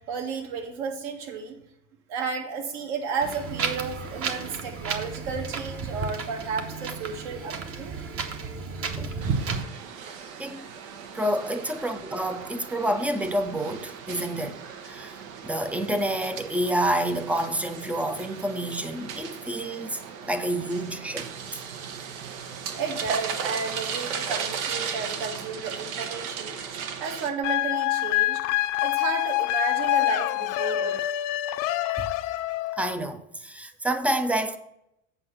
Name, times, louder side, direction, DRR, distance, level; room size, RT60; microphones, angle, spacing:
voice 1, 0.1-1.6 2.1-7.9 22.7-26.5 27.0-28.4 28.8-31.0, right 5 dB, 65° right, 1.9 m, -32 dB
Wind, 3.2-9.6, right 5 dB, 35° right, 1.0 m, -32 dB
sound 1, 9.2-27.3, right 7 dB, 85° right, 1.1 m, -36 dB
voice 2, 11.1-20.0 20.3-21.6 32.0-32.1 32.7-34.6, right 1 dB, 5° right, 0.4 m, -28 dB
sound 2, 27.4-32.9, left 16 dB, 55° left, 0.6 m, -26 dB
7.9 x 5.6 x 6.0 m
supercardioid pair, 120°, 39 cm